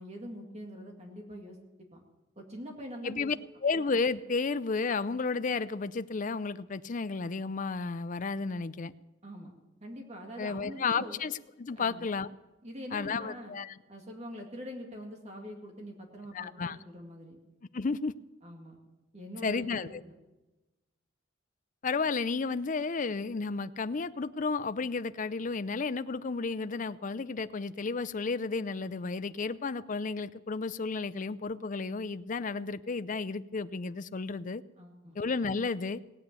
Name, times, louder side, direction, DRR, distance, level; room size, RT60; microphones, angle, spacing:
voice 1, 0.0-1.6 1.9-2.0 2.4-3.3 9.2-9.5 9.8-11.2 11.8-12.1 12.6-13.6 13.9-17.4 18.4-18.8 19.1-20.2 34.8-35.2, equal, 35° right, 2 dB, 2.2 m, -44 dB
voice 2, 3.0-3.3 3.6-8.9 10.4-12.3 12.9-13.7 16.3-16.8 17.7-18.1 19.4-20.0 21.8-34.6 35.2-36.0, left 4 dB, 40° left, 14 dB, 0.5 m, -32 dB
19.0 x 8.8 x 8.2 m, 1.1 s
head